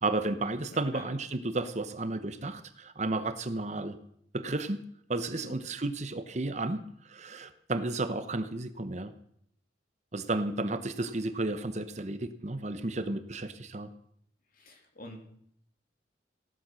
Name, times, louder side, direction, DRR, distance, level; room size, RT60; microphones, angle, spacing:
voice 1, 0.0-4.0 4.3-4.8 5.1-9.1 10.1-13.9, right 2 dB, 40° right, 10 dB, 0.9 m, -33 dB
voice 2, 0.7-1.1 5.3-5.6 14.5-15.2, left 1 dB, 50° left, 3 dB, 3.1 m, -47 dB
16.5 x 11.5 x 6.3 m, 0.69 s
head